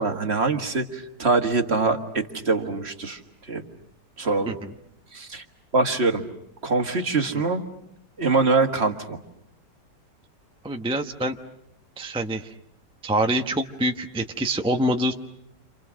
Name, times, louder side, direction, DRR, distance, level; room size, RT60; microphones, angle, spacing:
voice 1, 0.0-3.2 3.5-3.6 4.2-4.5 5.1-5.4 5.7-6.2 6.6-7.6 8.2-9.2, right 3 dB, 35° right, 5 dB, 1.9 m, -23 dB
voice 2, 10.6-11.4 12.0-12.5 13.0-15.1, right 1 dB, 5° right, 4 dB, 0.7 m, -25 dB
30.0 x 27.0 x 6.3 m, 0.77 s
omnidirectional pair, 1.9 m